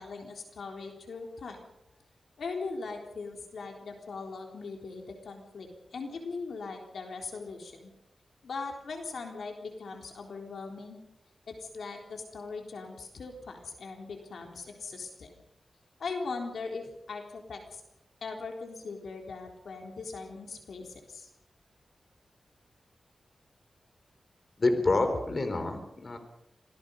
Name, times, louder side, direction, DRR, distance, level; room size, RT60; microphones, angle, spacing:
voice 1, 0.0-1.7 2.4-7.9 8.4-11.0 11.5-15.3 16.0-17.8 18.2-21.3, left 4 dB, 85° left, 2 dB, 3.9 m, -40 dB
voice 2, 24.6-26.2, left 2 dB, 45° left, 6 dB, 3.8 m, -27 dB
26.5 x 18.0 x 5.4 m, 0.83 s
wide cardioid pair, 95°, 0 cm